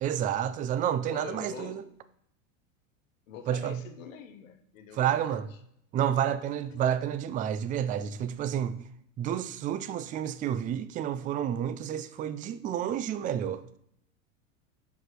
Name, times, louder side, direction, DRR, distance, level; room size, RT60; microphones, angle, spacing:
voice 1, 0.0-1.8 3.5-3.8 4.9-5.5 5.9-8.8 9.2-13.8, right 10 dB, 20° right, 0.3 m, -30 dB
voice 2, 1.1-1.8 3.3-5.4 6.3-6.4 6.7-6.8 13.2-13.4, left 8 dB, 75° left, 1.1 m, -45 dB
5.9 x 5.2 x 4.7 m
hypercardioid pair, 105°, 40 cm